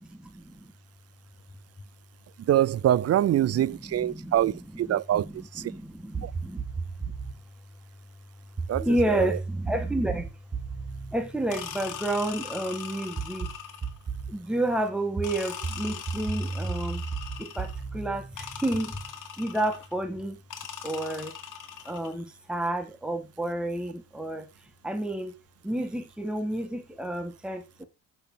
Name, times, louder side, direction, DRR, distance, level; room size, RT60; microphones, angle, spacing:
voice 1, 0.1-0.7 3.4-3.5 4.0-4.4 4.9-5.3 5.6-6.6 8.8-10.3 11.1-13.5 14.3-17.0 17.4-19.0 19.4-20.4 20.8-21.3 21.9-24.5 24.8-25.3 25.6-27.9, right 1 dB, 5° right, 1.7 m, -30 dB
voice 2, 2.4-5.7 6.2-6.3 8.7-9.4, right 12 dB, 50° right, 0.5 m, -25 dB
sound 1, 6.1-7.4 8.6-12.3 13.2-14.4 15.2-19.1, right 4 dB, 30° right, 1.3 m, -35 dB
sound 2, 11.5-14.1 15.2-17.8 18.4-19.9 20.5-22.1, left 8 dB, 65° left, 2.0 m, -40 dB
7.1 x 6.7 x 5.5 m
cardioid pair, 95°, 33 cm